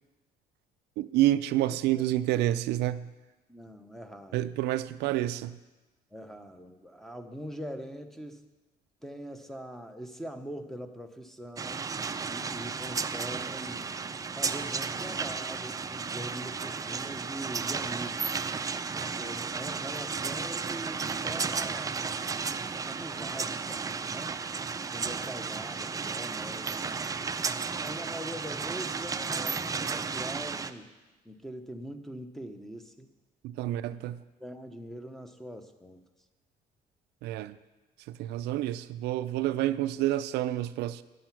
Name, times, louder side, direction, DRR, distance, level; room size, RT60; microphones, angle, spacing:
voice 1, 1.0-3.1 4.3-5.6 33.4-34.2 37.2-37.5 38.1-41.0, right 14 dB, 80° right, 0.4 m, -28 dB
voice 2, 1.6-2.1 3.5-4.5 6.1-8.5 9.0-11.9 12.3-13.9 14.3-18.4 18.9-22.0 22.8-24.3 24.9-27.0 27.8-30.9 31.2-33.1 33.6-34.0 34.4-36.0, equal, ahead, 0.8 m, -43 dB
sound 1, 11.6-30.7, right 5 dB, 20° right, 0.4 m, -33 dB
9.9 x 7.6 x 5.9 m
cardioid pair, 110°, 17 cm